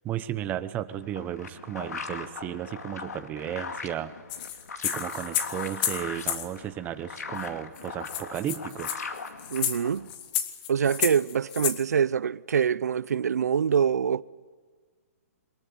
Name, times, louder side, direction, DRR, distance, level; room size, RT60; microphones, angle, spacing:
voice 1, 0.0-4.1 4.8-9.0, right 11 dB, 20° right, 0.9 m, -34 dB
sound 1, 0.9-10.1, left 5 dB, 90° left, 2.3 m, -39 dB
sound 2, 4.3-6.5 7.4-7.5 7.8-7.9 8.1-11.8, left 11 dB, 35° left, 1.7 m, -31 dB
voice 2, 9.5-10.1 10.7-14.2, right 7 dB, 85° right, 0.7 m, -25 dB
23.5 x 21.0 x 9.8 m
hypercardioid pair, 155°, 8 cm